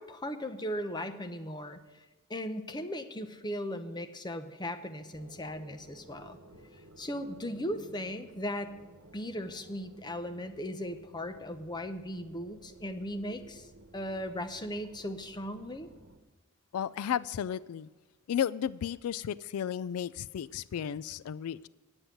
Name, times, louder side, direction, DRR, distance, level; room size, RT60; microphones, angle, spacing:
voice 1, 0.0-1.8 2.3-6.4 7.0-8.8 9.1-15.9, equal, 20° left, 7 dB, 0.8 m, -37 dB
sound 1, 5.1-16.2, right 2 dB, 70° right, 1.2 m, -55 dB
voice 2, 16.7-17.9 18.3-21.7, left 9 dB, 90° left, 18 dB, 0.3 m, -33 dB
9.8 x 8.0 x 9.1 m, 1.2 s
head